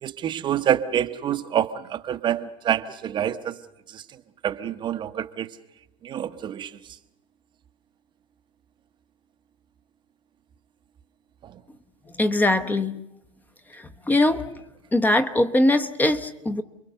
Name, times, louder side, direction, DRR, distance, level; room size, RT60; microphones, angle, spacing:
voice 1, 0.0-3.6 3.9-4.0 4.4-5.5 6.0-6.7 11.4-11.5, right 10 dB, 25° right, 9 dB, 1.0 m, -27 dB
voice 2, 12.2-13.0 13.7-14.5 14.9-16.6, left 1 dB, 10° left, 10 dB, 0.9 m, -22 dB
29.5 x 22.0 x 6.8 m, 0.86 s
supercardioid pair, 135°, 17 cm